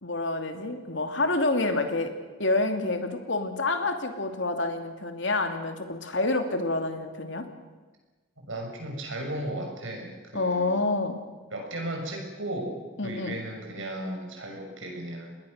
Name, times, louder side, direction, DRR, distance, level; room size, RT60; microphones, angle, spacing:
voice 1, 0.0-2.1 2.4-7.4 10.3-11.2 13.0-13.4, left 2 dB, 65° left, 6 dB, 2.6 m, -28 dB
voice 2, 8.4-10.8 11.5-15.3, right 1 dB, 80° right, 2 dB, 6.5 m, -35 dB
27.5 x 20.5 x 6.6 m, 1.3 s
head